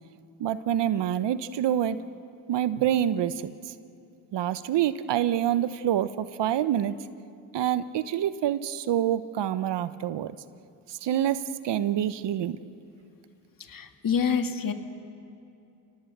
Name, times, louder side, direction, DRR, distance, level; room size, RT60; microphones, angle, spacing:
voice 1, 0.4-2.0 2.5-3.5 4.3-7.0 7.5-10.4 10.9-12.6, right 11 dB, 60° right, 14 dB, 1.0 m, -26 dB
voice 2, 13.7-14.7, left 6 dB, 45° left, 7 dB, 2.0 m, -27 dB
29.5 x 18.5 x 8.1 m, 2.6 s
supercardioid pair, 60°, 46 cm